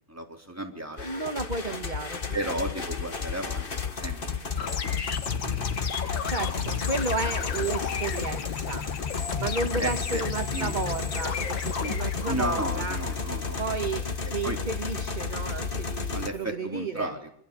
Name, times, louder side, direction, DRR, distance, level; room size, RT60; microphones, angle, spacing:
voice 1, 0.1-1.1 2.3-3.7 3.9-4.7 9.8-10.2 10.5-10.8 12.3-13.6 14.4-14.6 16.1-17.3, right 1 dB, 10° right, 2 dB, 4.1 m, -33 dB
sound 1, 1.0-16.3, left 5 dB, 30° left, 1.5 m, -32 dB
voice 2, 1.0-2.4 6.2-8.9 9.4-13.0 13.6-14.1 14.3-17.1, right 4 dB, 25° right, 6 dB, 1.8 m, -32 dB
sound 2, 4.6-13.3, left 6 dB, 90° left, 2.4 m, -34 dB
25.5 x 24.0 x 7.2 m, 0.68 s
omnidirectional pair, 2.0 m